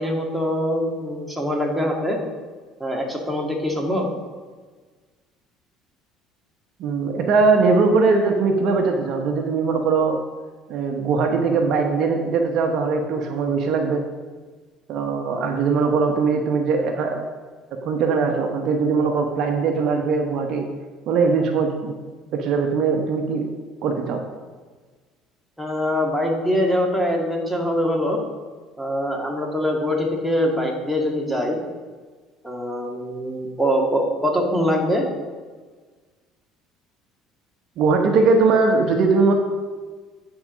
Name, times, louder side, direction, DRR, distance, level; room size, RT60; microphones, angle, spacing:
voice 1, 0.0-2.2 2.8-4.1 25.6-28.2 28.8-31.6 32.4-35.0, equal, ahead, 0 dB, 2.0 m, -23 dB
voice 2, 6.8-10.2 10.7-14.0 14.9-17.3 17.8-20.7 21.1-21.9 22.3-23.4 23.8-24.2 37.8-39.3, right 4 dB, 60° right, 4 dB, 1.0 m, -20 dB
9.8 x 4.9 x 5.1 m, 1.4 s
hypercardioid pair, 70°, 0 cm